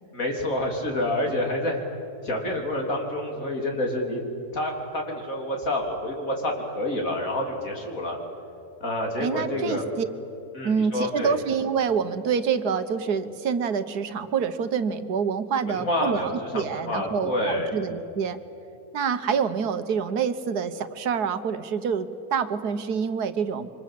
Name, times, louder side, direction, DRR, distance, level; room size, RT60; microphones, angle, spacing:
voice 1, 0.1-1.8 2.2-8.2 8.8-9.8 10.5-11.4 15.6-17.7, left 1 dB, 60° left, 1 dB, 4.0 m, -28 dB
voice 2, 9.2-10.1 10.6-18.4 18.9-23.7, right 6 dB, 85° right, 10 dB, 1.6 m, -27 dB
27.5 x 25.0 x 7.7 m, 2.9 s
omnidirectional pair, 1.6 m